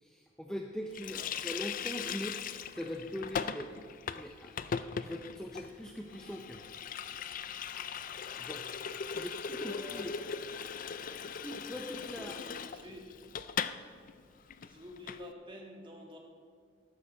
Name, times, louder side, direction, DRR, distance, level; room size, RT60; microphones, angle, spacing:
voice 1, 0.0-1.2 1.4-2.4 2.8-3.7 4.2-4.5 5.0-6.7 8.4-8.7 9.1-10.1 11.4-12.4, equal, 5° left, 1 dB, 0.6 m, -41 dB
Water tap faucet, 0.9-13.8 14.1-14.2 14.5-15.2, left 7 dB, 45° left, 0.4 m, -39 dB
voice 2, 1.0-1.3 9.6-10.4 10.7-10.8 12.1-13.1 14.6-16.2, equal, 25° right, 0 dB, 1.7 m, -49 dB
13.5 x 12.0 x 4.3 m, 2.1 s
head